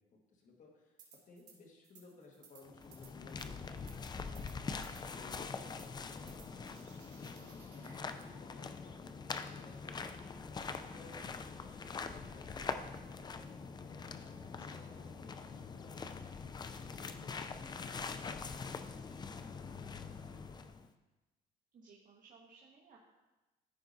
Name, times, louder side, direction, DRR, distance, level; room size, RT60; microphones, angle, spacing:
voice 1, 0.1-4.5 4.9-6.4 7.2-20.7, left 3 dB, 50° left, 0 dB, 1.6 m, -60 dB
sound 1, 1.0-1.6 1.8-8.3, right 6 dB, 80° right, 2.9 m, -62 dB
sound 2, 2.6-20.9, left 5 dB, 25° left, 0.5 m, -44 dB
voice 2, 21.7-23.0, right 4 dB, 55° right, -3 dB, 1.5 m, -60 dB
14.0 x 4.8 x 2.7 m, 1.1 s
cardioid pair, 110°, 17 cm